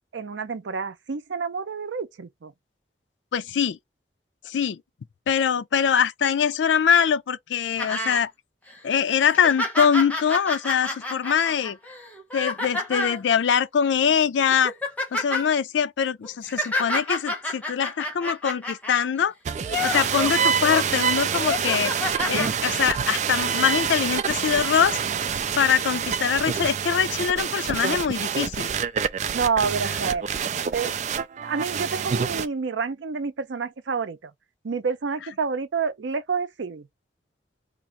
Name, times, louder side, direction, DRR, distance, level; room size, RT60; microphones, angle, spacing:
voice 1, 0.1-2.5 29.3-30.3 30.7-30.9 31.4-34.3 34.6-36.9, right 5 dB, 90° right, 0.5 m, -28 dB
voice 2, 3.3-3.8 4.4-4.8 5.3-8.3 8.8-11.8 12.3-14.7 15.1-19.3 19.8-25.0 25.6-28.7, left 7 dB, 85° left, 0.4 m, -23 dB
sound 1, 7.8-8.2 8.7-8.8 9.2-13.2 14.0-14.1 14.5-15.5 16.2-19.0 19.6-20.8 21.3-22.5 23.4-23.5, left 2 dB, 10° left, 0.9 m, -29 dB
sound 2, 19.5-32.5, right 7 dB, 40° right, 0.3 m, -27 dB
2.9 x 2.4 x 4.2 m
head